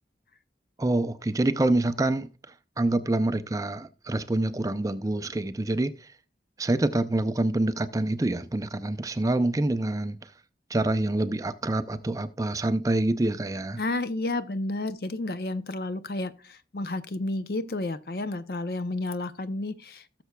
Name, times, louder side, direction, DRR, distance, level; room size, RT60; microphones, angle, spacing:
voice 1, 0.8-2.3 2.8-6.1 6.6-10.3 10.7-13.8, right 2 dB, 20° right, 0.4 m, -26 dB
voice 2, 13.8-20.2, left 2 dB, 60° left, 0.6 m, -31 dB
17.5 x 6.8 x 2.3 m
head